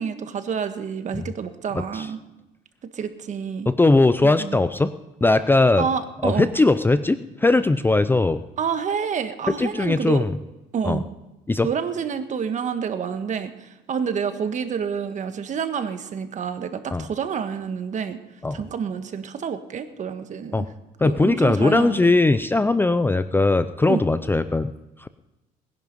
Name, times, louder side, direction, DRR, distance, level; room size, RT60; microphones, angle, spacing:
voice 1, 0.0-2.2 2.9-3.7 4.2-4.6 5.8-6.5 8.6-10.2 10.7-11.0 11.6-18.2 18.5-20.7 21.0-22.1 23.9-24.0, right 7 dB, 45° right, 9 dB, 1.4 m, -28 dB
voice 2, 1.7-2.1 3.7-4.9 5.2-5.9 6.2-8.4 9.5-10.4 10.8-11.0 11.5-11.7 16.9-17.1 18.4-18.6 20.5-20.7 21.0-24.7 25.0-25.1, left 2 dB, 10° left, 12 dB, 0.5 m, -19 dB
20.0 x 10.5 x 5.3 m, 1.0 s
cardioid pair, 110°, 17 cm